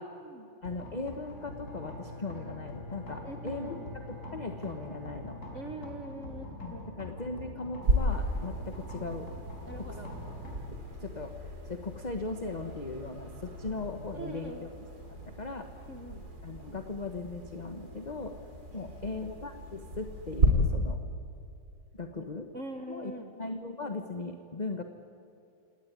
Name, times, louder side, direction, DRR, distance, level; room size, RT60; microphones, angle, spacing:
voice 1, 0.0-0.5 3.2-3.9 5.5-6.9 9.7-10.1 14.1-14.7 15.9-16.3 18.7-19.2 22.2-22.3 22.5-23.3, right 2 dB, 45° right, 5 dB, 1.8 m, -43 dB
sound 1, 0.6-14.5, left 1 dB, 45° left, 5.3 m, -46 dB
voice 2, 0.6-5.4 6.6-9.3 9.7-9.9 10.7-14.7 15.3-15.7 16.4-18.4 18.7-21.0 21.9-22.5 22.9-24.8, left 3 dB, 25° left, 6 dB, 1.1 m, -38 dB
Bowed string instrument, 1.2-6.7, left 3 dB, 65° left, 4.5 m, -48 dB
sound 2, 7.8-20.5, right 1 dB, 60° right, 3.8 m, -35 dB
28.0 x 18.0 x 9.7 m, 2.6 s
omnidirectional pair, 1.9 m